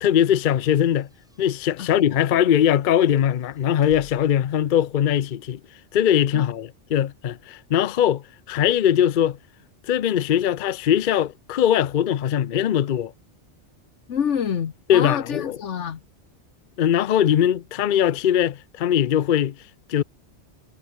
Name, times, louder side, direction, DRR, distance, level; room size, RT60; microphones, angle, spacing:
voice 1, 0.0-1.1 1.4-5.6 5.9-9.4 9.9-13.1 14.9-15.6 16.8-19.6 19.9-20.0, left 10 dB, 55° left, 0.7 m, -21 dB
FX Closing Sqeezing Wooden Door, 0.7-4.5, equal, 5° right, 5.5 m, -54 dB
voice 2, 14.1-16.0, left 7 dB, 80° left, 1.4 m, -27 dB
omnidirectional pair, 1.2 m